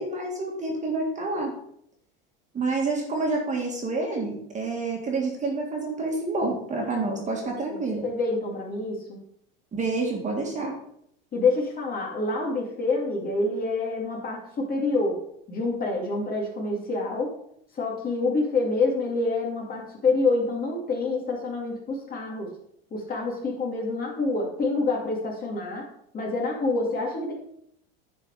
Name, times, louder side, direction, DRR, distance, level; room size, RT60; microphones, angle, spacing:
voice 1, 0.0-1.5 2.5-8.0 9.7-10.8, right 3 dB, 25° right, 0 dB, 2.0 m, -28 dB
voice 2, 7.0-9.2 11.3-15.2 15.5-17.3 17.7-22.5 22.9-25.9 26.1-27.3, left 3 dB, 30° left, -1 dB, 2.5 m, -27 dB
9.7 x 4.5 x 4.9 m, 0.71 s
supercardioid pair, 120°, 29 cm